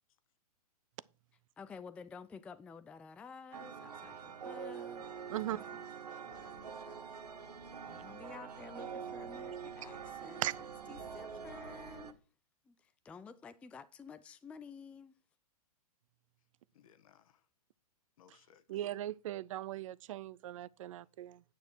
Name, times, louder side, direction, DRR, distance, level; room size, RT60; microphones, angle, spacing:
voice 1, 1.6-5.0 5.5-5.6 6.4-6.5 7.8-10.4 10.9-12.2 12.7-15.2, left 5 dB, 5° left, 0.3 m, -51 dB
sound 1, 3.5-12.1, right 6 dB, 85° right, 1.2 m, -45 dB
voice 2, 5.3-5.9 6.2-7.0 16.7-17.4 18.2-18.6, left 9 dB, 60° left, 1.1 m, -61 dB
voice 3, 18.7-21.4, right 13 dB, 55° right, 0.5 m, -38 dB
9.4 x 6.8 x 4.6 m
hypercardioid pair, 130°, 20 cm